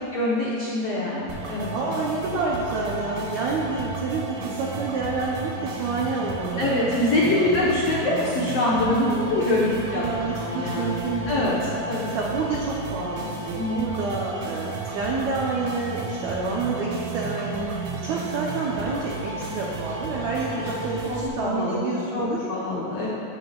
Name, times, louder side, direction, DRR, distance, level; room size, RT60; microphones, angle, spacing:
voice 1, 0.1-1.7 6.6-10.0 10.4-11.5 11.9-12.0 13.6-13.9 21.1-23.1, left 2 dB, 80° left, -6 dB, 1.4 m, -24 dB
sound 1, 1.3-21.3, right 4 dB, 65° right, 2.2 m, -33 dB
voice 2, 1.7-6.6 7.3-7.8 8.8-9.3 9.7-11.5 12.0-22.5 23.0-23.1, right 3 dB, 90° right, -3 dB, 1.6 m, -29 dB
17.0 x 6.7 x 2.4 m, 2.8 s
omnidirectional pair, 4.4 m